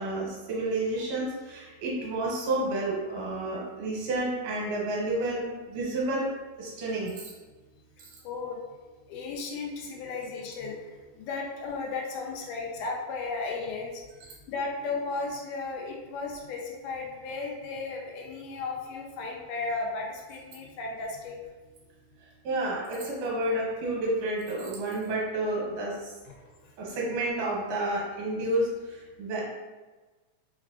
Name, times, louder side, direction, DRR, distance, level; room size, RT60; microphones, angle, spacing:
voice 1, 0.0-7.2 22.4-26.1 26.8-29.4, right 2 dB, 90° right, -3 dB, 2.5 m, -30 dB
voice 2, 8.2-14.0 14.5-21.4 26.3-26.5, left 3 dB, 85° left, 0 dB, 2.1 m, -35 dB
5.5 x 2.4 x 2.3 m, 1.3 s
omnidirectional pair, 3.5 m